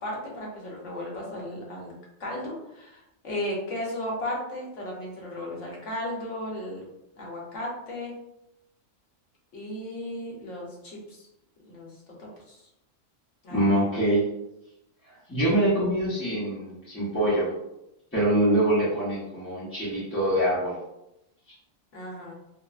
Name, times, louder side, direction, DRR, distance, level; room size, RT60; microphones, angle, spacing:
voice 1, 0.0-1.9 2.2-6.9 7.1-8.1 9.5-11.3 11.6-11.9 12.2-12.6 13.4-13.6 21.9-22.3, left 1 dB, 70° left, -3 dB, 1.1 m, -35 dB
voice 2, 13.5-14.2 15.3-17.5 18.1-20.7, right 1 dB, 15° left, -10 dB, 0.5 m, -24 dB
3.1 x 2.0 x 2.3 m, 0.86 s
omnidirectional pair, 1.3 m